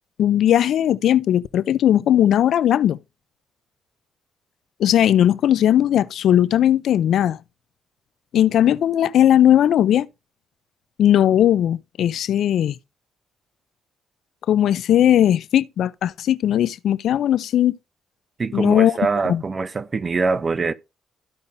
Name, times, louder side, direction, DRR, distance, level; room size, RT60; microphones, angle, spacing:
voice 1, 0.2-3.0 4.8-7.4 8.3-10.1 11.0-12.8 14.5-17.8 18.5-19.0 19.3-19.4, left 11 dB, 70° left, 0.5 m, -18 dB
voice 2, 18.4-20.7, right 4 dB, 35° right, 0.7 m, -23 dB
14.0 x 5.3 x 2.6 m
cardioid pair, 90°, 0 cm